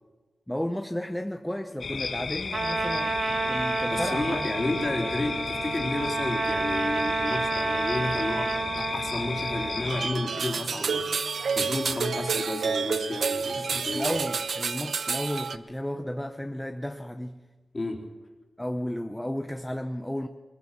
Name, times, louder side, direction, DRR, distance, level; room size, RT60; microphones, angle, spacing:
voice 1, 0.5-4.5 13.5-17.4 18.6-20.3, left 1 dB, 5° left, 0.8 m, -33 dB
sound 1, 1.8-10.1, left 4 dB, 85° left, 1.9 m, -34 dB
Trumpet, 2.5-9.9, right 4 dB, 55° right, 1.1 m, -30 dB
voice 2, 3.9-14.2 17.7-18.1, left 2 dB, 30° left, 3.7 m, -32 dB
sound 2, 9.8-15.6, right 5 dB, 80° right, 0.8 m, -29 dB
24.0 x 21.5 x 5.8 m
wide cardioid pair, 115°, 0 cm